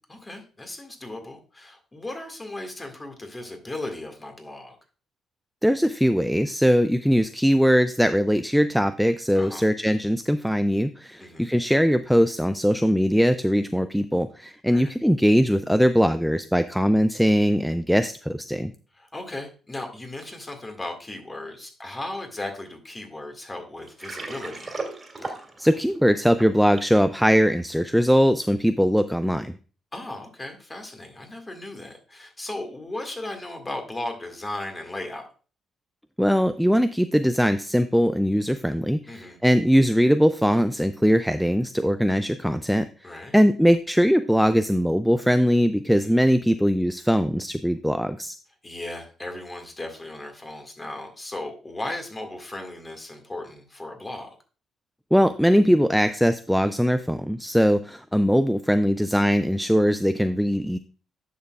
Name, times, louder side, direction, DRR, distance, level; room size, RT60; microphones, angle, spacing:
voice 1, 0.1-4.8 9.4-9.7 11.2-11.5 14.7-14.9 18.9-24.7 29.9-35.3 39.1-39.4 43.0-43.3 45.9-46.1 48.6-54.4, left 2 dB, 20° left, 4 dB, 1.9 m, -36 dB
voice 2, 5.6-18.7 25.3-29.5 36.2-48.3 55.1-60.8, equal, ahead, 11 dB, 0.3 m, -21 dB
Water, 23.8-27.0, right 3 dB, 30° right, 2.2 m, -36 dB
10.0 x 6.7 x 2.4 m, 0.37 s
cardioid pair, 90°, 0 cm